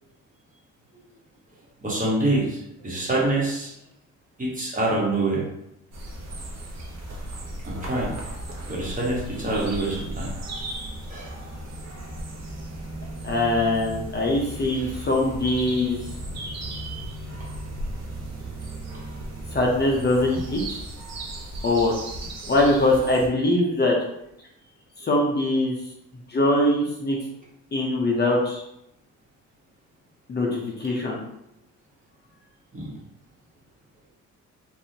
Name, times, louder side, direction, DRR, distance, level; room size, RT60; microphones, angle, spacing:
voice 1, 1.8-3.7 4.4-5.4 7.6-8.1 8.7-10.3 11.1-11.3 32.7-32.9, right 2 dB, 25° right, -5 dB, 1.3 m, -25 dB
sound 1, 5.9-23.3, right 1 dB, 60° right, 1.0 m, -36 dB
voice 2, 13.2-16.0 19.5-20.8 21.6-21.9 22.5-24.0 25.0-25.7 26.3-27.2 27.7-28.6 30.3-31.2, left 1 dB, 35° left, -2 dB, 0.7 m, -22 dB
3.3 x 2.6 x 2.8 m, 0.80 s
cardioid pair, 90°, 30 cm